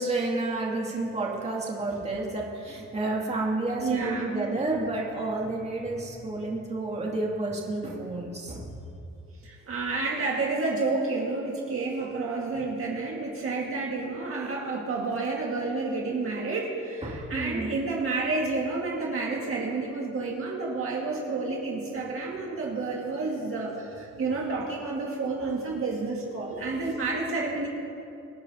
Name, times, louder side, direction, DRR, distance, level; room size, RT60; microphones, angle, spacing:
voice 1, 0.0-8.7 17.0-17.7, right 2 dB, 20° right, -3 dB, 2.6 m, -30 dB
voice 2, 3.8-4.6 9.4-27.7, right 3 dB, 45° right, -3 dB, 2.0 m, -30 dB
25.5 x 10.5 x 2.9 m, 2.7 s
cardioid pair, 120°, 29 cm